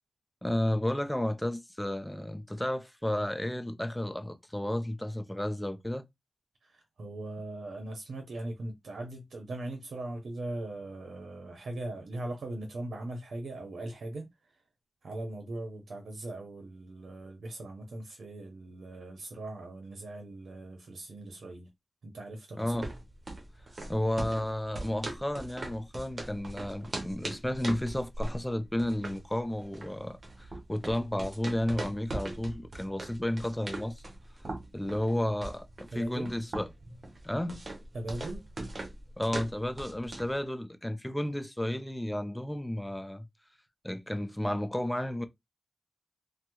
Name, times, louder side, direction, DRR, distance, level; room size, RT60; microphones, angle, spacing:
voice 1, 0.4-6.0 22.6-22.9 23.9-34.0 34.7-36.7 37.2-37.6 39.2-43.3 43.8-45.3, left 1 dB, 10° left, 0.5 m, -32 dB
voice 2, 6.6-14.6 15.0-21.7 22.0-22.9 35.9-36.3 37.9-38.4, right 1 dB, 80° right, 0.7 m, -40 dB
sound 1, 22.6-40.4, right 2 dB, 55° right, 0.9 m, -41 dB
3.2 x 2.1 x 3.0 m
cardioid pair, 55°, 0 cm